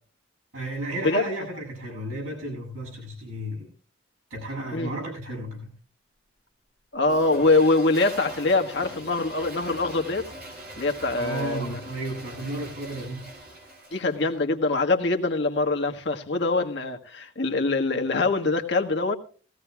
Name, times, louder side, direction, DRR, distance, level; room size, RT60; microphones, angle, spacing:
voice 1, 0.5-3.7 4.3-5.7 11.1-13.3, right 1 dB, 85° right, -1 dB, 7.7 m, -33 dB
voice 2, 6.9-10.2 10.8-11.8 13.9-19.2, left 3 dB, 55° left, 3 dB, 1.5 m, -24 dB
Toilet flush, 7.0-14.3, right 1 dB, 45° right, 3.6 m, -41 dB
19.0 x 16.0 x 2.3 m, 0.39 s
head